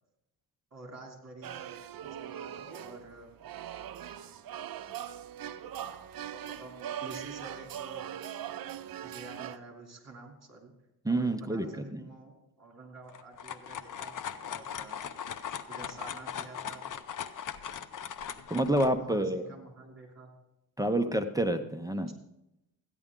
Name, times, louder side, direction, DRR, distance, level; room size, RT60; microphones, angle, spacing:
voice 1, 0.7-1.8 2.0-3.3 6.5-6.7 7.0-8.1 9.0-10.7 11.1-15.0 15.7-16.8 19.0-20.3 20.8-21.1, right 3 dB, 40° right, 1 dB, 3.0 m, -49 dB
sound 1, 1.4-9.6, right 10 dB, 60° right, 0.6 m, -41 dB
voice 2, 11.0-12.1 18.5-19.5 20.8-22.1, right 1 dB, 10° right, 6 dB, 0.6 m, -28 dB
sound 2, 13.1-18.9, left 8 dB, 50° left, 0.7 m, -39 dB
13.5 x 10.0 x 3.7 m, 0.89 s
cardioid pair, 110°, 40 cm